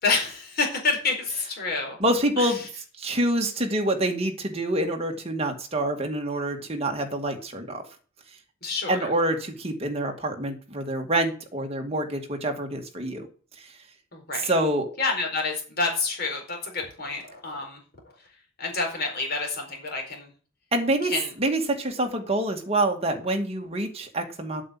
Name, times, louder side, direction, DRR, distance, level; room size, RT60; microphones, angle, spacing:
voice 1, 0.0-2.0 2.4-2.7 8.6-9.1 14.1-14.5 15.0-17.8 18.6-20.3 21.0-21.3, left 3 dB, 50° left, 2 dB, 4.5 m, -28 dB
voice 2, 2.0-2.6 3.0-7.8 8.9-13.3 14.4-14.9 20.7-21.1 21.4-24.6, right 1 dB, 30° right, 3 dB, 2.1 m, -26 dB
8.5 x 7.4 x 8.5 m, 0.40 s
head